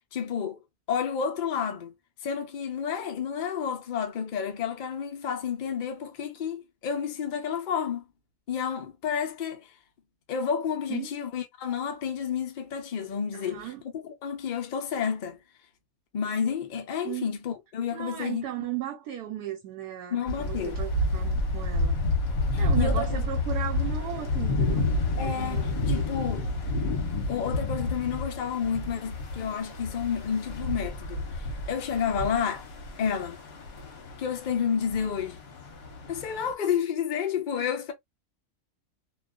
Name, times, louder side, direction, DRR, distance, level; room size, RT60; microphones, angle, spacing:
voice 1, 0.1-0.6 0.9-1.9 2.2-8.0 8.5-9.7 10.3-13.7 13.9-15.4 16.1-18.5 20.1-20.8 22.5-23.2 25.2-26.5 27.3-32.7 33.0-33.4 34.2-35.4 36.0-37.9, left 7 dB, 90° left, 0.4 m, -30 dB
voice 2, 13.3-13.8 17.0-17.3 17.9-21.9 22.6-24.9 25.2-26.1 37.5-37.6, right 12 dB, 85° right, 1.1 m, -36 dB
sound 1, 20.3-36.5, left 2 dB, 50° left, 0.8 m, -30 dB
2.4 x 2.3 x 2.2 m
omnidirectional pair, 1.6 m